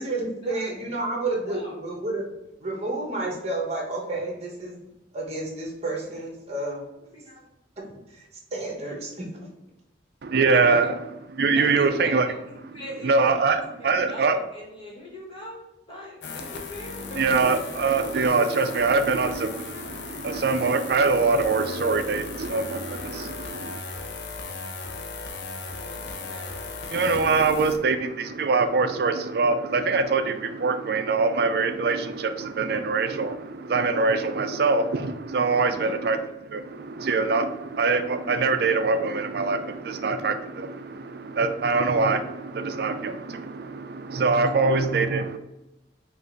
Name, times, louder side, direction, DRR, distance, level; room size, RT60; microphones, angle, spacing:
voice 1, 0.0-2.3 2.6-4.7 5.1-6.8 8.1-8.3 8.5-9.3, right 2 dB, 35° right, -1 dB, 1.1 m, -30 dB
voice 2, 1.0-1.8 7.1-7.5 7.8-7.9 10.4-10.9 11.5-12.4 12.7-17.2 25.7-26.8 35.6-36.0, equal, 30° left, -5 dB, 1.4 m, -41 dB
voice 3, 10.2-11.0 11.3-12.3 12.7-14.4 17.2-23.8 26.9-45.4, right 4 dB, 55° right, 9 dB, 0.4 m, -24 dB
sound 1, 16.2-27.8, left 4 dB, 75° left, 0.5 m, -37 dB
5.2 x 2.5 x 3.9 m, 0.93 s
head